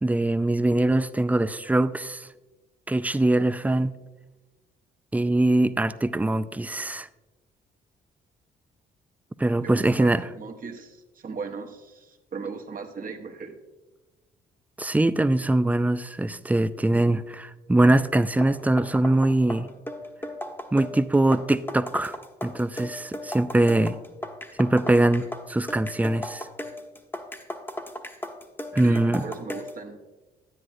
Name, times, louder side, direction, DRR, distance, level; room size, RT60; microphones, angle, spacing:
voice 1, 0.0-2.3 2.9-4.0 5.1-7.1 9.4-10.3 14.8-19.7 20.7-22.1 22.4-24.0 24.6-26.5 28.7-29.2, right 1 dB, 5° right, 0.4 m, -22 dB
voice 2, 9.6-13.6 28.8-30.0, right 5 dB, 45° right, 1.2 m, -37 dB
sound 1, 18.2-29.8, left 1 dB, 10° left, 1.1 m, -36 dB
9.8 x 9.7 x 2.7 m
hypercardioid pair, 50°, 20 cm